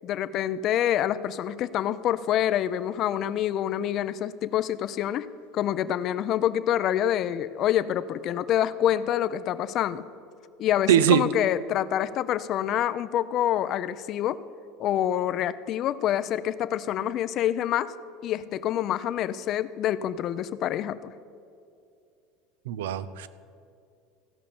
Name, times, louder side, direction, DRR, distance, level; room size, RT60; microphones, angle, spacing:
voice 1, 0.0-5.3 5.5-10.1 10.6-14.4 14.8-17.9 18.2-21.1, left 11 dB, 45° left, 15 dB, 0.5 m, -26 dB
voice 2, 10.9-11.2 22.7-23.3, right 10 dB, 90° right, 15 dB, 0.5 m, -21 dB
15.5 x 5.4 x 6.9 m, 2.5 s
supercardioid pair, 115°, 0 cm